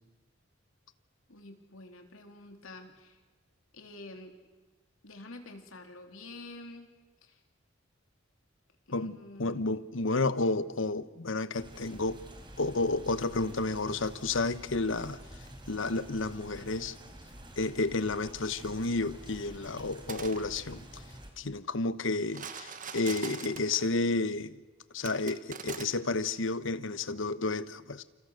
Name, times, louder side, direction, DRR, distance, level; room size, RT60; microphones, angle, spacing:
voice 1, 1.3-3.2 3.7-4.4 5.0-6.9 7.2-7.4 8.9-9.8, left 2 dB, 90° left, 3.6 m, -48 dB
voice 2, 8.9-12.2 12.6-15.2 15.7-16.9 17.6-21.0 21.4-24.6 24.9-28.0, left 3 dB, 70° left, 1.1 m, -31 dB
sound 1, 11.5-21.3, right 1 dB, 25° right, 4.2 m, -48 dB
sound 2, 19.9-20.4 22.3-23.9 25.0-25.8, right 6 dB, 40° right, 1.6 m, -42 dB
28.5 x 28.0 x 6.5 m
head